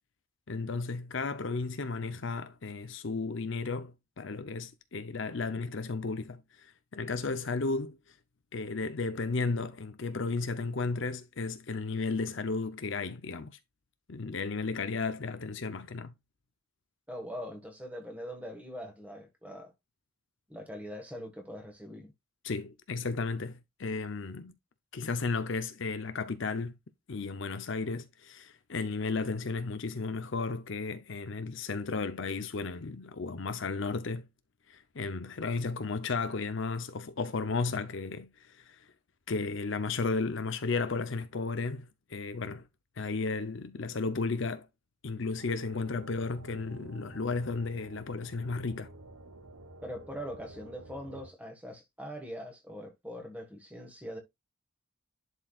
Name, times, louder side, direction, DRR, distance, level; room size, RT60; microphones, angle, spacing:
voice 1, 0.5-8.1 8.5-13.6 14.1-16.1 22.4-24.5 24.9-26.8 27.1-34.3 34.7-38.9 39.3-42.7 43.0-44.7 45.0-48.9, left 4 dB, 55° left, 0.6 m, -34 dB
voice 2, 17.1-19.7 20.5-22.1 49.8-54.2, equal, 5° right, 1.5 m, -42 dB
sound 1, 45.4-51.3, right 2 dB, 85° right, 1.0 m, -51 dB
11.0 x 4.6 x 2.4 m
head